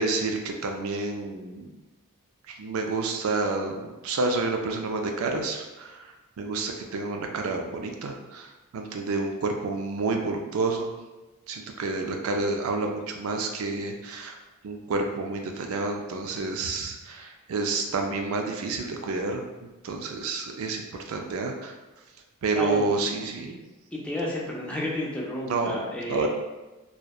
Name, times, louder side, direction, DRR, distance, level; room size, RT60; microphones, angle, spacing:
voice 1, 0.0-1.8 2.5-10.9 11.5-14.4 14.6-21.7 22.4-23.6 25.5-25.8 26.1-26.3, right 3 dB, 65° right, 3 dB, 0.4 m, -29 dB
voice 2, 22.5-22.9 23.9-26.3, left 1 dB, 5° left, -4 dB, 0.4 m, -31 dB
2.6 x 2.1 x 2.3 m, 1.1 s
head